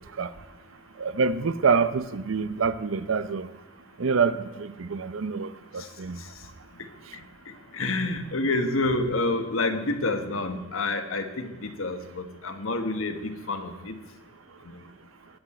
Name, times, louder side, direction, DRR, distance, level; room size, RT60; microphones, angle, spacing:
voice 1, 1.0-3.5 4.0-6.2, right 5 dB, 75° right, 0.6 m, -26 dB
voice 2, 6.8-14.0 14.6-14.8, left 2 dB, 80° left, 1.3 m, -29 dB
18.5 x 7.8 x 4.3 m
head